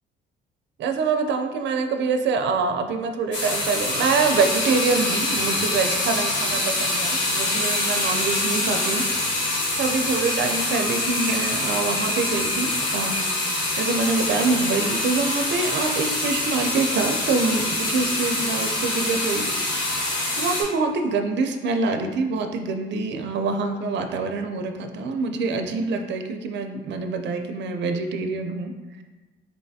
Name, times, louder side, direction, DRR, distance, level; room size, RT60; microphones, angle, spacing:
voice 1, 0.8-9.0 9.8-13.2 13.8-19.7 20.0-28.7, right 4 dB, 65° right, 6 dB, 0.5 m, -25 dB
sound 1, 3.3-20.6, left 2 dB, 65° left, 1.2 m, -25 dB
4.4 x 3.2 x 2.7 m, 1.2 s
cardioid pair, 90°, 20 cm